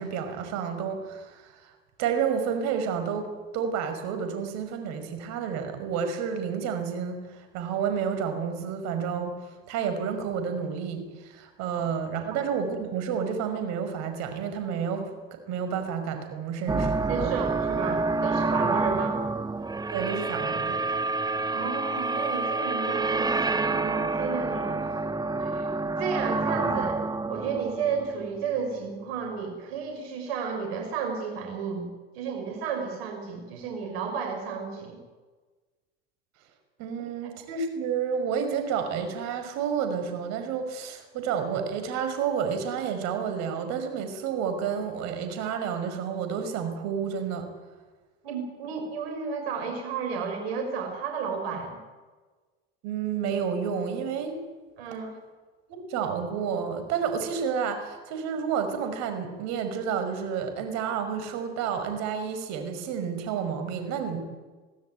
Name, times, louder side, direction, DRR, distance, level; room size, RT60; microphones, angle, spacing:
voice 1, 0.0-1.7 2.0-9.3 9.7-15.1 15.5-17.3 19.9-20.8 36.8-47.5 52.8-54.4 55.7-64.2, right 7 dB, 65° right, 7 dB, 5.6 m, -30 dB
sound 1, 16.7-28.8, right 3 dB, 15° right, 1.2 m, -28 dB
voice 2, 17.1-19.2 21.5-24.9 25.4-25.7 26.0-27.0 27.3-31.9 32.1-35.0 37.2-37.3 48.2-51.8 54.8-55.1, right 6 dB, 80° right, 3 dB, 6.2 m, -32 dB
24.5 x 16.5 x 9.4 m, 1.3 s
supercardioid pair, 95°, 30 cm